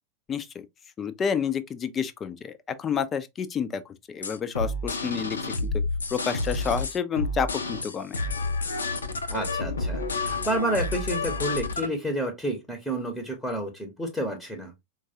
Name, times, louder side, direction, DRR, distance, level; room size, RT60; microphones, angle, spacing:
voice 1, 0.3-0.6 1.0-2.5 2.8-3.8 4.1-5.5 6.1-8.2, left 7 dB, 25° left, 0.4 m, -29 dB
sound 1, 4.2-11.9, left 3 dB, 70° left, 0.6 m, -29 dB
voice 2, 9.3-14.7, right 1 dB, ahead, 0.8 m, -30 dB
4.5 x 2.3 x 2.7 m
figure-of-eight pair, 90°, 0 cm